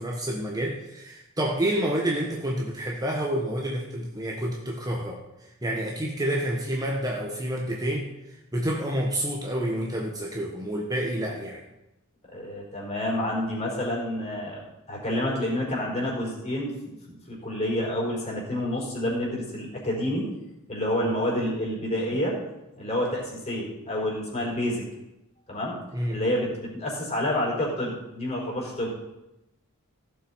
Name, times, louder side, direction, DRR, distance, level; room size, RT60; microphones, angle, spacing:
voice 1, 0.0-5.2 5.6-8.1 8.5-11.6 25.9-26.2, right 1 dB, 15° right, -1 dB, 1.2 m, -28 dB
voice 2, 12.3-14.6 14.9-20.2 20.7-22.4 22.7-24.8 25.5-25.8 26.1-28.9, left 1 dB, 30° left, -4 dB, 4.4 m, -28 dB
15.5 x 7.2 x 4.6 m, 0.95 s
head